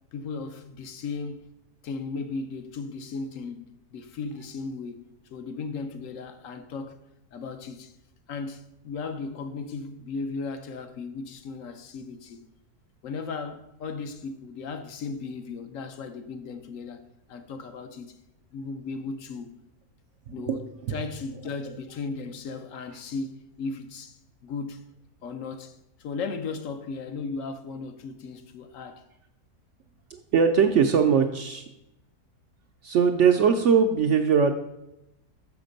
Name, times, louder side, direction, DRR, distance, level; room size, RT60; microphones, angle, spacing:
voice 1, 0.1-1.5 1.8-7.0 7.3-8.0 8.3-12.5 13.0-18.2 18.5-19.5 20.3-24.8 25.2-29.0, left 4 dB, 65° left, 1.0 m, -36 dB
voice 2, 20.3-20.6 20.9-21.0 30.1-31.7 32.8-34.5, right 6 dB, 65° right, 0.7 m, -21 dB
6.4 x 5.9 x 5.1 m
omnidirectional pair, 1.6 m